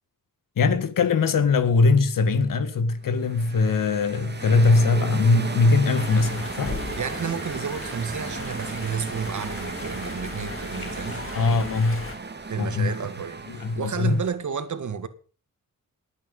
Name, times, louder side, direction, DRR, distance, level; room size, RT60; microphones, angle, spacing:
voice 1, 0.6-6.8 11.3-12.1 12.6-12.9 13.5-14.2, left 3 dB, 80° left, 1.9 m, -21 dB
sound 1, 3.0-14.3, right 4 dB, 30° right, 2.0 m, -36 dB
sound 2, 5.9-12.2, left 3 dB, 40° left, 3.4 m, -37 dB
voice 2, 7.0-11.2 12.5-13.4 13.8-15.1, right 6 dB, 65° right, 1.9 m, -31 dB
19.0 x 9.1 x 5.5 m
cardioid pair, 90°, 33 cm